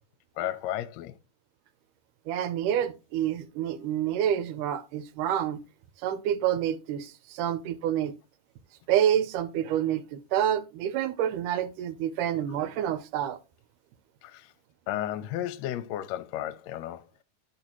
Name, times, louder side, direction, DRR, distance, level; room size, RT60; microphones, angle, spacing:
voice 1, 0.4-1.2 14.2-14.5 14.9-17.0, left 12 dB, 80° left, 1.6 m, -33 dB
voice 2, 2.3-5.6 6.0-8.1 8.9-13.4, right 10 dB, 80° right, 2.2 m, -28 dB
11.0 x 6.6 x 2.9 m
omnidirectional pair, 3.7 m